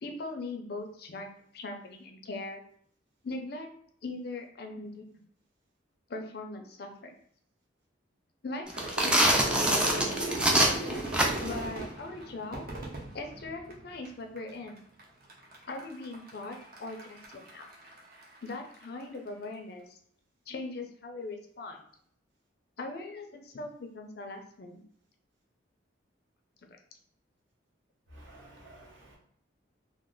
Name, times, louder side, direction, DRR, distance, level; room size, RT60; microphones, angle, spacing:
voice 1, 0.0-2.6 3.2-3.7 4.0-5.0 6.1-7.2 8.4-11.0 11.4-12.6 13.1-14.8 15.6-17.7 18.4-20.0 20.5-21.8 22.8-24.8, left 2 dB, 55° left, 4 dB, 0.5 m, -40 dB
sound 1, 8.7-11.6, right 1 dB, 5° right, 0.3 m, -25 dB
Crowd / Fireworks, 8.7-14.1 14.4-15.0 15.3-18.8, right 2 dB, 50° right, 0.8 m, -37 dB
voice 2, 28.1-29.2, right 1 dB, 75° right, -3 dB, 1.1 m, -52 dB
3.0 x 2.0 x 3.7 m, 0.63 s
head